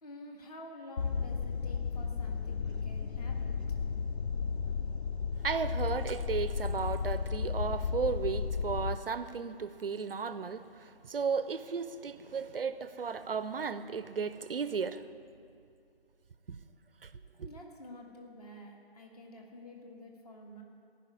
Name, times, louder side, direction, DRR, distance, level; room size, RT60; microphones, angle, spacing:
voice 1, 0.0-3.6 17.4-20.6, left 1 dB, 35° left, 1.8 m, -49 dB
sound 1, 1.0-9.0, left 5 dB, 80° left, 0.6 m, -34 dB
voice 2, 5.4-15.1 17.0-17.1 17.4-17.5, right 5 dB, 60° right, 0.6 m, -34 dB
15.0 x 5.6 x 9.6 m
figure-of-eight pair, 150°, 32 cm